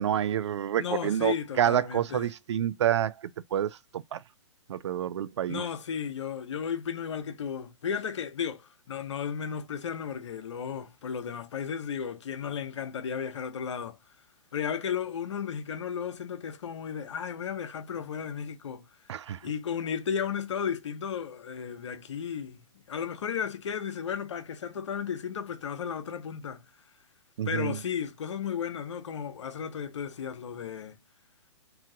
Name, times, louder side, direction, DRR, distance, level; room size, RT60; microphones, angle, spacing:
voice 1, 0.0-3.1 3.5-4.2 4.7-5.6 19.1-19.4 27.4-27.8, right 10 dB, 65° right, 0.5 m, -28 dB
voice 2, 0.8-2.3 5.5-14.0 14.5-18.8 19.4-22.6 22.9-26.6 27.4-31.0, left 7 dB, 70° left, 0.8 m, -34 dB
3.0 x 2.8 x 3.7 m
hypercardioid pair, 125°, 16 cm